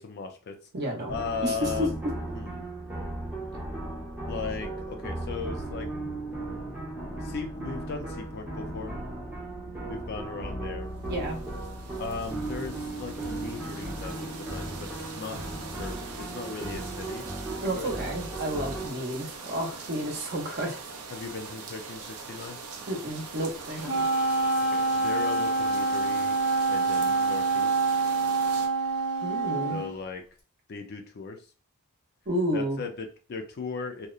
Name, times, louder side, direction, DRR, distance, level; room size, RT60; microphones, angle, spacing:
voice 1, 0.0-0.6 1.1-2.0 2.3-2.6 4.3-5.9 7.2-9.0 9.9-10.9 12.0-17.3 17.8-18.1 21.1-22.6 24.7-26.3 26.7-27.8 29.7-30.2 30.7-31.4 32.5-34.1, left 4 dB, 45° left, 4 dB, 0.4 m, -37 dB
voice 2, 0.7-1.1 1.4-1.7 11.1-11.4 17.6-20.8 22.9-24.1 29.2-29.8 32.3-32.8, right 1 dB, 45° right, 2 dB, 0.7 m, -31 dB
sound 1, 1.1-18.9, right 2 dB, 10° right, 0.6 m, -36 dB
sound 2, 11.0-28.7, right 4 dB, 90° right, 0.5 m, -42 dB
Wind instrument woodwind instrument, 23.8-29.9, right 3 dB, 90° left, 0.8 m, -26 dB
2.7 x 2.0 x 2.4 m, 0.37 s
head